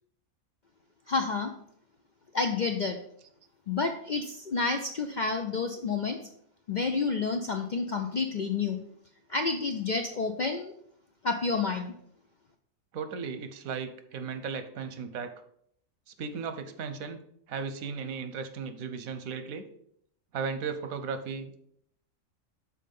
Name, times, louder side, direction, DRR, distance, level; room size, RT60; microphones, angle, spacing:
voice 1, 1.1-1.5 2.3-3.0 3.7-6.2 6.7-8.8 9.3-10.7 11.2-11.9, left 4 dB, 60° left, 4 dB, 0.4 m, -29 dB
voice 2, 12.9-15.3 16.2-17.2 17.5-19.6 20.3-21.6, right 5 dB, 85° right, 9 dB, 1.2 m, -36 dB
6.2 x 4.2 x 5.3 m, 0.68 s
omnidirectional pair, 1.4 m